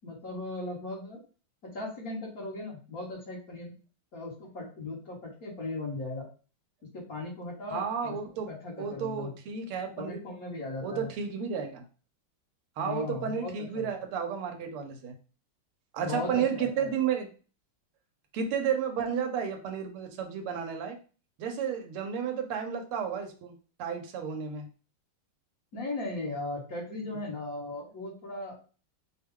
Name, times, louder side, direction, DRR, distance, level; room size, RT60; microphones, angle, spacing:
voice 1, 0.0-1.2 1.7-3.7 4.1-6.3 6.9-8.2 8.5-9.3 10.0-11.1 12.8-13.9 16.0-16.9 25.7-28.6, left 2 dB, 45° left, -3 dB, 1.7 m, -37 dB
voice 2, 7.7-8.5 8.8-10.3 10.8-11.8 12.8-15.1 15.9-17.3 18.3-21.0 21.4-24.7, right 7 dB, 90° right, 5 dB, 1.7 m, -32 dB
4.9 x 2.3 x 3.5 m, 0.36 s
omnidirectional pair, 2.3 m